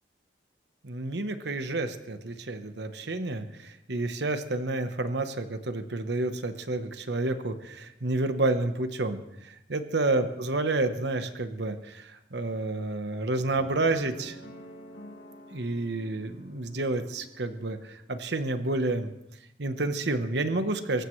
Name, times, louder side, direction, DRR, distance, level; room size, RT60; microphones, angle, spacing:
voice 1, 0.8-14.4 15.5-19.1 19.6-21.0, right 2 dB, 75° right, 9 dB, 1.0 m, -30 dB
sound 1, 13.6-17.7, equal, 80° left, 2.8 m, -48 dB
24.0 x 15.0 x 3.2 m, 0.86 s
head